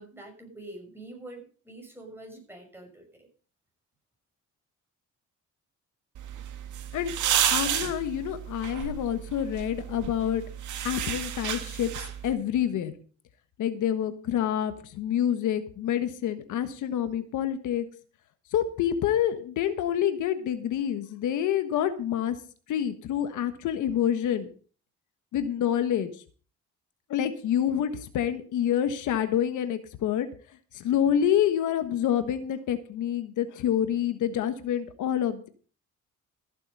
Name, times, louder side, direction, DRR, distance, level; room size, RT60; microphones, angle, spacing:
voice 1, 0.0-3.3, right 2 dB, 5° right, 2 dB, 6.1 m, -45 dB
sound 1, 6.1-12.3, right 10 dB, 80° right, 2.0 m, -31 dB
voice 2, 7.5-10.4 10.8-11.9 12.2-12.9 13.6-17.9 18.5-22.3 22.7-24.5 25.3-26.1 27.1-30.3 30.7-35.5, left 10 dB, 85° left, 9 dB, 1.4 m, -27 dB
14.5 x 7.8 x 5.4 m, 0.41 s
cardioid pair, 90°, 30 cm